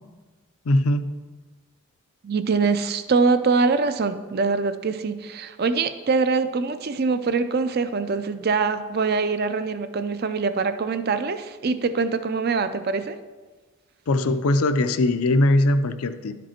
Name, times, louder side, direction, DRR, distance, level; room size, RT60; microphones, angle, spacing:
voice 1, 0.7-1.1 14.1-16.3, left 1 dB, 75° left, 11 dB, 0.5 m, -20 dB
voice 2, 2.2-13.2, right 4 dB, 45° right, 11 dB, 0.4 m, -23 dB
11.0 x 5.2 x 4.4 m, 1.3 s
head